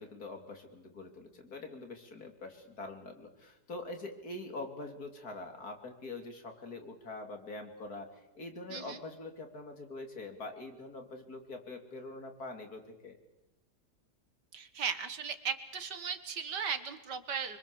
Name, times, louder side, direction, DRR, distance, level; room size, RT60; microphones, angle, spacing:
voice 1, 0.0-13.2, left 2 dB, 60° left, 5 dB, 3.4 m, -44 dB
voice 2, 14.5-17.6, right 6 dB, 80° right, 10 dB, 2.2 m, -37 dB
26.0 x 24.0 x 7.1 m, 0.97 s
omnidirectional pair, 1.8 m